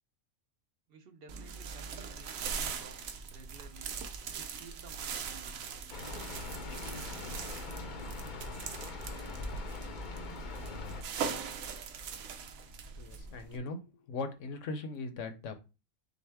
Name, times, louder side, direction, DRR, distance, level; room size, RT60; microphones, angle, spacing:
voice 1, 0.9-4.0 4.4-5.6, right 4 dB, 55° right, 6 dB, 0.8 m, -54 dB
sound 1, 1.3-13.6, right 6 dB, 90° right, 1.1 m, -41 dB
Rain, 5.9-11.0, left 2 dB, 45° left, 0.7 m, -41 dB
voice 2, 13.0-13.8 14.1-15.5, left 3 dB, 70° left, 7 dB, 1.1 m, -39 dB
6.2 x 2.1 x 3.4 m, 0.29 s
omnidirectional pair, 1.4 m